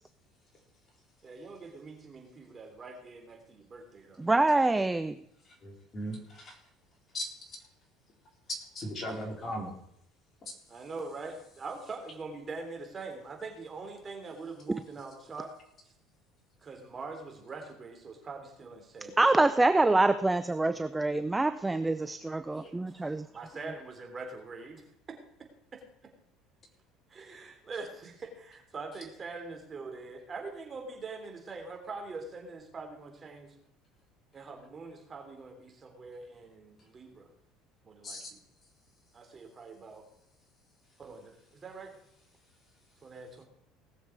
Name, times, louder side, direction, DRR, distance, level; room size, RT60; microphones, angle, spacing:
voice 1, 1.2-4.2 10.7-15.5 16.6-19.2 23.3-25.2 25.7-25.8 27.1-33.5 34.3-37.3 37.8-38.4 39.1-40.1 41.0-41.9 43.0-43.4, right 3 dB, 30° right, 4 dB, 3.5 m, -43 dB
voice 2, 4.2-5.2 19.2-23.3, right 2 dB, 15° right, 13 dB, 0.5 m, -25 dB
voice 3, 5.5-6.6 7.1-7.6 8.7-9.7 22.6-22.7 38.0-38.3, equal, 35° left, 1 dB, 4.1 m, -38 dB
19.0 x 7.3 x 4.7 m, 0.74 s
supercardioid pair, 90°, 0 cm